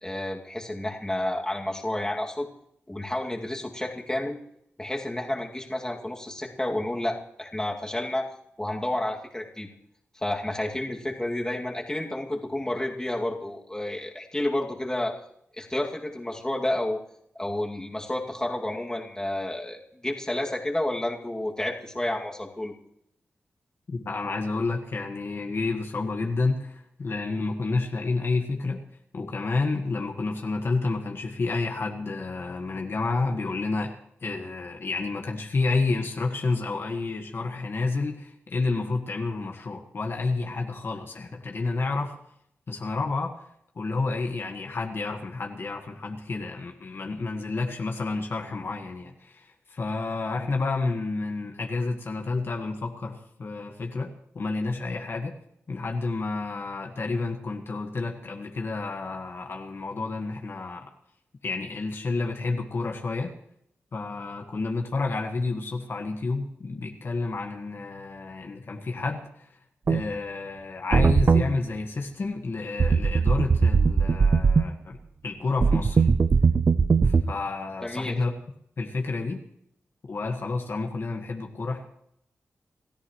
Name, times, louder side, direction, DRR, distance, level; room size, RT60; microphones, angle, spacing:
voice 1, 0.0-2.5 2.9-4.4 4.8-8.3 8.6-9.7 10.1-15.1 15.6-17.0 17.3-22.7 77.8-78.2, left 1 dB, 15° left, 0 dB, 2.4 m, -30 dB
voice 2, 23.9-28.8 29.1-33.9 34.2-42.1 42.7-43.3 43.8-55.3 55.7-60.9 61.4-63.3 63.9-69.5 69.9-75.0 75.2-76.1 77.0-78.3 78.8-79.4 80.1-81.8, left 3 dB, 55° left, 2 dB, 1.7 m, -30 dB
sound 1, 69.9-70.0 70.9-71.5 72.8-74.7 75.6-77.2, right 5 dB, 50° right, 0.6 m, -20 dB
28.0 x 13.5 x 3.2 m, 0.74 s
cardioid pair, 80°, 5 cm